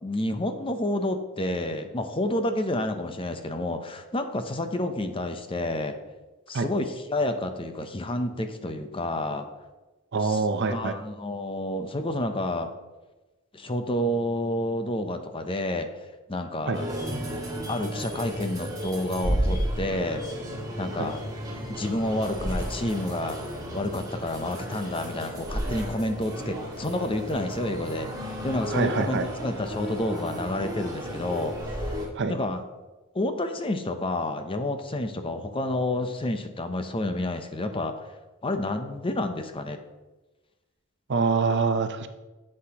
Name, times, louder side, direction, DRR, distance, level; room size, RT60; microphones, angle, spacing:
voice 1, 0.0-6.0 6.5-9.5 10.2-10.4 10.7-12.7 13.5-15.9 16.3-16.9 17.7-20.2 20.8-21.2 21.7-23.4 23.7-31.9 32.3-32.6 33.1-38.1 38.4-39.8, left 1 dB, 25° left, 7 dB, 0.6 m, -29 dB
voice 2, 10.1-10.9 16.7-16.8 21.0-21.1 28.7-29.2 32.1-32.3 41.1-42.1, right 4 dB, 55° right, 9 dB, 0.6 m, -25 dB
sound 1, 16.7-32.1, equal, 15° right, 1.8 m, -33 dB
9.9 x 7.6 x 2.9 m, 1.1 s
head